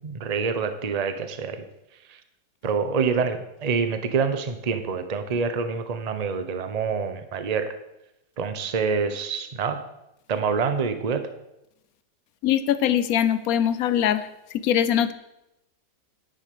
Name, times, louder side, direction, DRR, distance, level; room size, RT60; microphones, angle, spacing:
voice 1, 0.0-1.6 2.6-7.7 8.4-9.8 10.3-11.2, right 5 dB, 30° right, 9 dB, 0.7 m, -26 dB
voice 2, 12.4-14.3 14.5-15.1, left 10 dB, 60° left, 13 dB, 1.1 m, -22 dB
10.5 x 9.4 x 6.8 m, 0.89 s
omnidirectional pair, 1.9 m